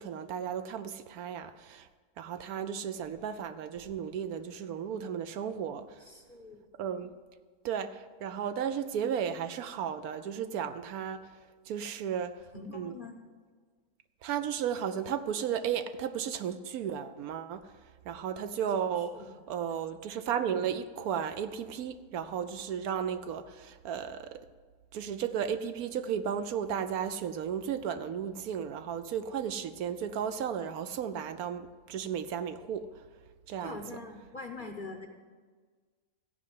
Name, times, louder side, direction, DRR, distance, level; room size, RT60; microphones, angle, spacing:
voice 1, 0.0-1.9 2.2-6.0 6.8-7.1 7.6-11.2 11.7-12.3 12.7-13.0 14.2-17.7 18.1-19.2 19.5-24.4 24.9-32.9 33.5-33.8, right 8 dB, 75° right, 10 dB, 1.1 m, -34 dB
voice 2, 6.0-6.6 12.5-13.2 19.1-19.3 33.6-35.1, left 3 dB, 40° left, 4 dB, 0.8 m, -43 dB
14.0 x 5.4 x 9.2 m, 1.5 s
omnidirectional pair, 1.7 m